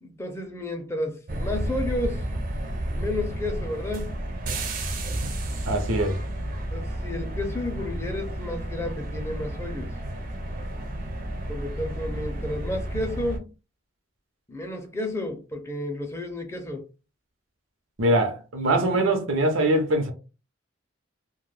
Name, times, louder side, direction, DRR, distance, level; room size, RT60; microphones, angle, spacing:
voice 1, 0.0-2.3 2.9-4.1 6.7-9.9 11.5-13.5 14.5-16.8 18.9-19.0, left 1 dB, 15° left, 0.4 m, -32 dB
sound 1, 1.3-13.4, right 1 dB, 45° right, 0.5 m, -31 dB
voice 2, 5.7-6.2 18.0-20.1, right 1 dB, 90° right, 0.7 m, -22 dB
2.2 x 2.1 x 3.1 m
head